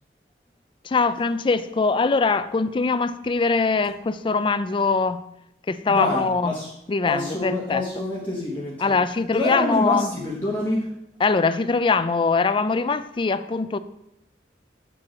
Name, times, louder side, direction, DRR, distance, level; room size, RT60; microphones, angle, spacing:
voice 1, 0.8-5.2 5.7-6.5 6.9-7.8 8.8-10.1 11.2-13.8, left 4 dB, 30° left, 0.4 m, -22 dB
voice 2, 5.9-6.7 7.1-9.0 9.3-10.9, left 1 dB, 10° left, 1.3 m, -26 dB
7.6 x 4.6 x 6.3 m
head